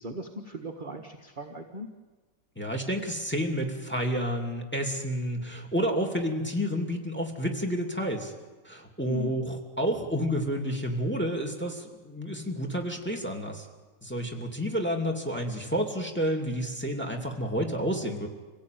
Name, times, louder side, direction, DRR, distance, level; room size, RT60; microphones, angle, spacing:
voice 1, 0.0-1.9 9.1-9.3, equal, 30° right, 3 dB, 1.4 m, -38 dB
voice 2, 2.6-8.3 8.6-13.7 14.0-18.3, equal, 5° left, 3 dB, 2.7 m, -30 dB
26.0 x 17.0 x 9.4 m, 1.3 s
omnidirectional pair, 2.0 m